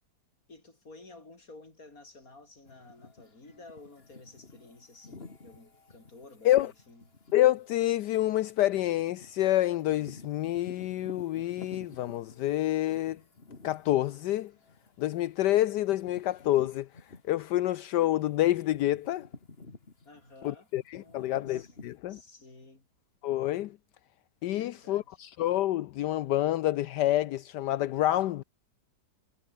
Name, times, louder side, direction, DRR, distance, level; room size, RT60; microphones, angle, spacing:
voice 1, 0.5-7.1 20.1-20.7 21.0-22.9 24.5-25.2, left 2 dB, 50° left, 5.5 m, -53 dB
sound 1, 2.6-17.8 18.1-22.0, left 3 dB, 35° left, 2.6 m, -52 dB
voice 2, 7.3-13.2 13.6-14.5 15.0-16.9 17.3-19.3 20.4-22.2 23.2-23.7 24.4-28.4, left 14 dB, 75° left, 1.2 m, -27 dB
omnidirectional pair, 1.9 m